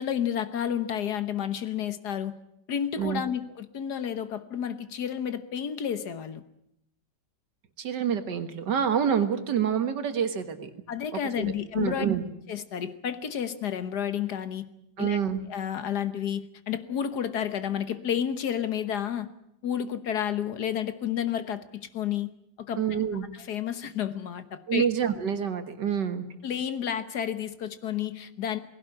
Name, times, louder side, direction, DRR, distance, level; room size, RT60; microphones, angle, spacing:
voice 1, 0.0-2.3 2.7-6.4 10.9-12.1 12.5-14.6 15.0-15.2 15.5-19.3 19.6-22.3 22.6-23.0 23.4-24.9 26.4-28.6, left 9 dB, 65° left, 12 dB, 1.7 m, -31 dB
voice 2, 7.8-10.7 11.4-12.2 15.0-15.4 22.8-23.3 24.7-26.3, right 8 dB, 75° right, 9 dB, 2.1 m, -27 dB
19.0 x 16.5 x 9.9 m, 0.79 s
omnidirectional pair, 1.9 m